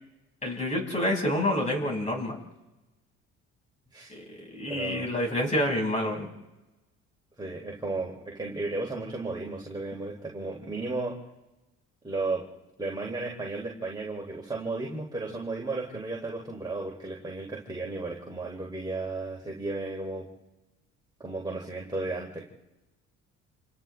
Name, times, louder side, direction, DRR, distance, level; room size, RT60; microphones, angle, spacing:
voice 1, 0.4-2.4 4.1-6.3, left 1 dB, 25° left, 0 dB, 5.9 m, -28 dB
voice 2, 4.7-5.1 7.4-11.1 12.0-12.4 12.8-20.3 21.2-22.4, right 3 dB, 15° right, -2 dB, 3.4 m, -34 dB
29.5 x 27.5 x 3.4 m, 1.1 s
cardioid pair, 100°, 30 cm